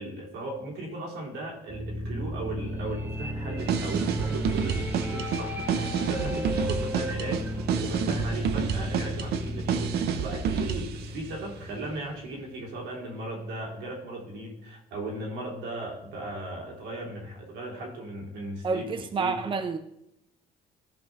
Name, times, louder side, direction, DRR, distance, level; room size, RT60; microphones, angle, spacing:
voice 1, 0.0-19.3, right 2 dB, 90° right, -2 dB, 3.1 m, -37 dB
sound 1, 1.7-12.6, left 1 dB, 10° right, 1.0 m, -35 dB
sound 2, 3.6-11.0, right 7 dB, 70° right, 0.9 m, -29 dB
voice 2, 18.6-19.8, right 4 dB, 30° right, 8 dB, 0.6 m, -29 dB
14.0 x 5.4 x 3.7 m, 0.81 s
cardioid pair, 110°, 17 cm